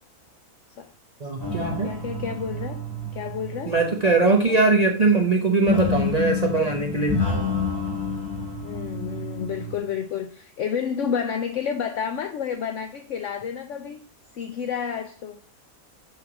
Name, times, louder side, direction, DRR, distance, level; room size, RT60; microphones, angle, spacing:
voice 1, 1.2-1.9 3.7-7.3, right 3 dB, 35° right, 0.8 m, -21 dB
sound 1, 1.4-4.4 5.7-9.8, left 3 dB, 40° left, 3.5 m, -29 dB
voice 2, 1.8-2.8 3.1-3.8 4.5-4.6 8.6-14.0 14.3-15.4, left 7 dB, 65° left, 0.9 m, -30 dB
9.7 x 3.5 x 5.9 m
omnidirectional pair, 1.5 m